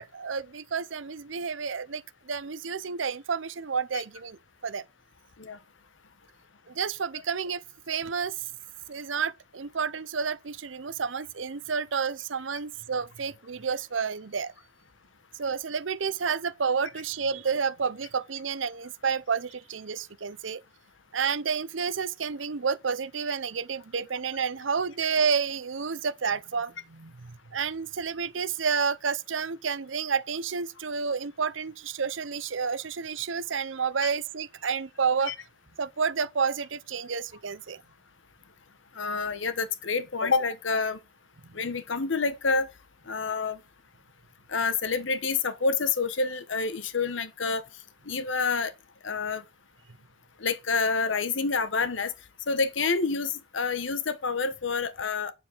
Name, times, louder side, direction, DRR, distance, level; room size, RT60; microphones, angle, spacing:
voice 1, 0.0-4.8 6.7-8.3 8.9-14.5 15.3-20.6 21.1-35.3 35.8-37.8 41.4-41.5, right 6 dB, 85° right, 0.7 m, -30 dB
voice 2, 38.9-41.0 41.5-42.7 43.1-43.6 44.5-47.6 48.1-48.7 49.0-49.4 50.4-52.1 52.5-55.3, left 4 dB, 85° left, 1.1 m, -28 dB
9.5 x 7.1 x 4.5 m
head